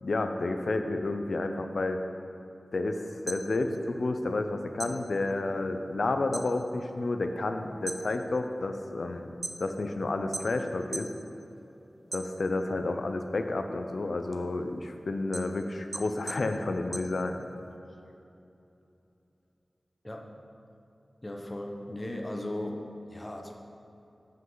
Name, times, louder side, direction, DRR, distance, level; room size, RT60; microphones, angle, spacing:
voice 1, 0.0-2.0 2.7-9.3 9.6-11.1 12.1-17.4, left 2 dB, 70° left, 6 dB, 0.6 m, -30 dB
sound 1, 3.1-4.5 4.8-6.5 6.9-7.3 7.7-9.9 10.3-11.2 11.6-12.8 13.2-17.7, right 2 dB, 45° right, 0.7 m, -41 dB
voice 2, 20.0-20.4 21.2-23.5, left 1 dB, 25° left, 1 dB, 0.9 m, -37 dB
13.5 x 5.4 x 4.0 m, 2.8 s
wide cardioid pair, 80°, 0 cm